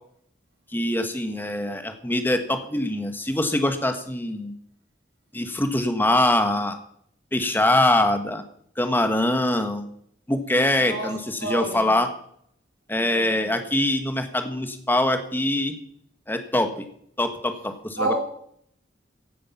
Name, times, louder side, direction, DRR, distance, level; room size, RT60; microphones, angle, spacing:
voice 1, 0.7-4.5 5.3-6.8 7.3-8.4 8.8-9.9 10.3-12.1 12.9-15.8 16.3-16.9 17.2-18.1, left 1 dB, 10° left, 7 dB, 1.4 m, -23 dB
voice 2, 10.8-11.1 11.4-11.9 12.9-13.4 18.0-18.2, right 2 dB, 70° right, 0 dB, 5.5 m, -29 dB
16.0 x 10.0 x 5.8 m, 0.68 s
head